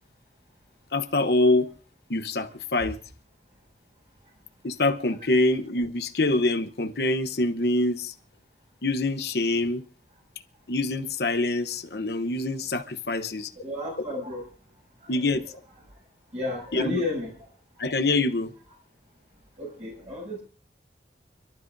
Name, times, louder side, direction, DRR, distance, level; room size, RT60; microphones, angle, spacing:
voice 1, 0.9-1.7 2.1-3.0 4.6-8.1 8.8-9.8 10.7-13.5 15.1-15.4 16.7-17.0 17.8-18.5, left 2 dB, 65° left, 1.0 m, -25 dB
voice 2, 13.6-14.4 15.1-15.3 16.3-17.3 19.6-20.4, left 2 dB, 40° right, 7.9 m, -32 dB
30.0 x 12.5 x 2.7 m
head